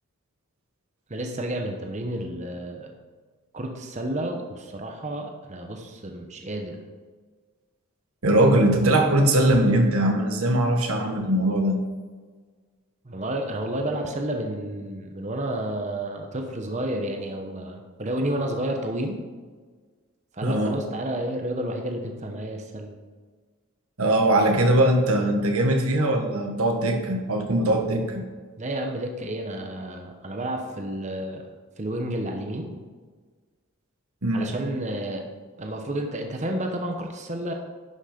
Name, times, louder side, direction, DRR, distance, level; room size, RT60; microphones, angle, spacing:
voice 1, 1.1-2.9 3.5-6.8 13.0-19.2 20.3-22.9 28.6-31.4 31.8-32.7 34.3-35.3 35.6-37.5, right 1 dB, 35° right, 3 dB, 0.9 m, -31 dB
voice 2, 8.2-11.8 20.4-20.8 24.0-28.2 34.2-34.5, right 1 dB, 90° right, 3 dB, 1.5 m, -21 dB
11.0 x 6.3 x 5.1 m, 1.5 s
head